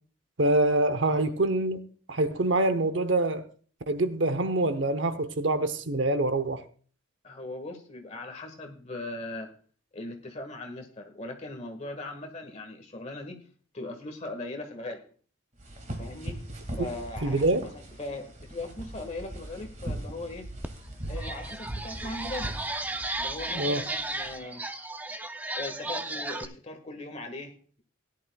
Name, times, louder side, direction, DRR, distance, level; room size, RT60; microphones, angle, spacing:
voice 1, 0.4-3.5 3.9-6.6 16.8-16.9 17.2-17.7 23.5-23.9, right 2 dB, 65° right, 0.8 m, -25 dB
voice 2, 7.2-9.5 9.9-13.4 13.7-15.0 16.0-16.4 16.8-20.5 21.1-22.6 23.2-24.6 25.5-27.8, left 2 dB, 30° left, 1.6 m, -39 dB
sound 1, 15.6-24.4, right 1 dB, 35° right, 2.0 m, -40 dB
sound 2, 20.6-20.7 21.1-26.4, right 2 dB, 10° right, 0.4 m, -34 dB
17.0 x 11.0 x 2.3 m
head